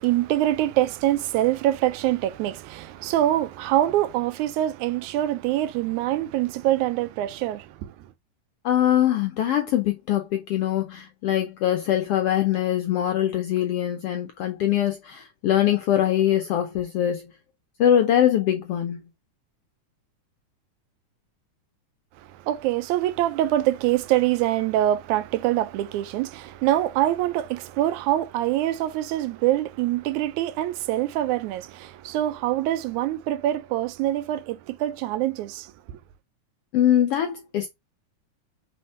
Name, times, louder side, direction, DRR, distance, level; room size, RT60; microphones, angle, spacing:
voice 1, 0.0-7.9 22.5-35.7, right 13 dB, 80° right, 1.9 m, -24 dB
voice 2, 8.6-17.3 17.8-19.0 36.7-37.7, left 11 dB, 75° left, 1.3 m, -22 dB
4.4 x 4.3 x 5.4 m
omnidirectional pair, 3.5 m